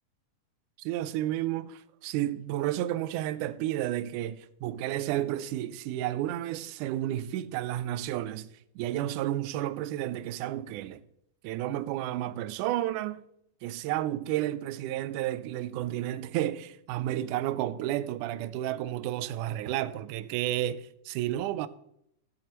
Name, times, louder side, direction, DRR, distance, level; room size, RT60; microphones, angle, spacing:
voice 1, 0.8-8.5 8.8-11.0 11.4-13.2 13.6-21.7, right 13 dB, 80° right, 2.0 m, -31 dB
13.5 x 9.9 x 3.0 m
omnidirectional pair, 3.7 m